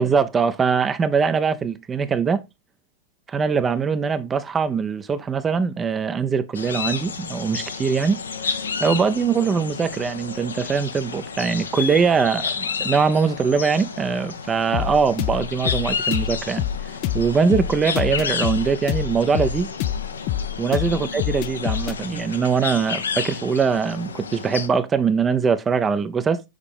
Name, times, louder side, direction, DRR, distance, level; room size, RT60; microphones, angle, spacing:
voice 1, 0.0-2.4 3.3-8.2 8.8-19.7 20.6-26.4, right 5 dB, 20° right, 0.5 m, -22 dB
sound 1, 6.5-24.7, left 6 dB, 70° left, 0.7 m, -31 dB
sound 2, 14.7-22.0, left 11 dB, 40° left, 0.4 m, -26 dB
6.5 x 4.8 x 3.4 m
figure-of-eight pair, 90°, 0 cm